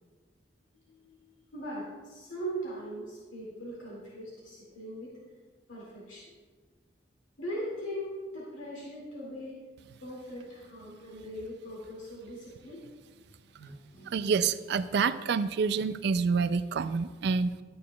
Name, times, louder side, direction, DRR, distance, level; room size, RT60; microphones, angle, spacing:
voice 1, 0.7-1.2 1.5-5.1 5.7-6.3 7.4-9.5 10.0-12.9 13.6-14.3 17.6-17.7, equal, 85° left, -6 dB, 2.3 m, -40 dB
voice 2, 14.1-17.5, right 5 dB, 60° right, 13 dB, 0.3 m, -27 dB
12.5 x 8.4 x 2.3 m, 1.4 s
head